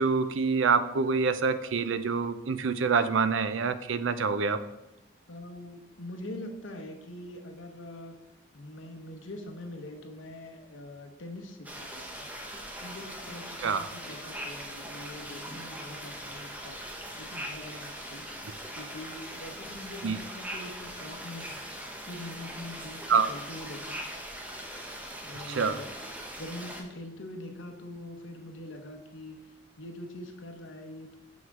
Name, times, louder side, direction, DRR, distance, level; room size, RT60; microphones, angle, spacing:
voice 1, 0.0-4.6 13.6-13.8 20.0-20.2 23.1-23.3 25.5-25.8, right 5 dB, 85° right, 12 dB, 0.5 m, -26 dB
voice 2, 5.3-8.2 8.5-12.3 12.8-16.8 17.2-18.2 18.7-21.6 22.0-24.0 25.2-25.9 26.4-31.2, left 1 dB, 85° left, 5 dB, 1.0 m, -43 dB
sound 1, 11.6-26.8, equal, 10° right, 0.8 m, -41 dB
7.1 x 6.2 x 3.7 m, 1.0 s
head